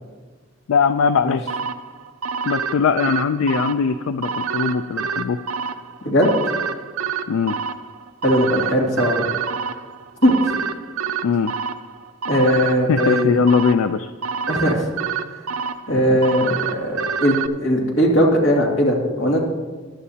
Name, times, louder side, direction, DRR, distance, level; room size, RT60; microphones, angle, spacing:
voice 1, 0.7-1.4 2.5-5.4 7.3-7.6 11.2-11.5 12.9-14.1 15.9-16.2, left 5 dB, 85° left, 10 dB, 0.4 m, -20 dB
sound 1, 1.5-17.5, right 6 dB, 90° right, 0.6 m, -28 dB
voice 2, 8.2-9.2 10.2-10.3 12.3-13.3 14.5-14.9 15.9-19.4, equal, 60° left, -2 dB, 2.4 m, -19 dB
15.0 x 11.5 x 2.8 m, 1.4 s
head